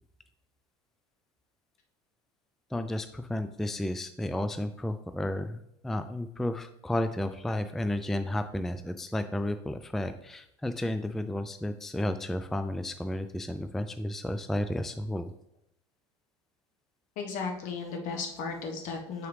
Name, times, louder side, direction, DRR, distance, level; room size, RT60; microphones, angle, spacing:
voice 1, 2.7-15.3, left 1 dB, ahead, 9 dB, 0.3 m, -32 dB
voice 2, 17.2-19.3, left 4 dB, 60° left, 3 dB, 1.3 m, -35 dB
6.2 x 4.7 x 3.2 m, 0.75 s
hypercardioid pair, 75°, 15 cm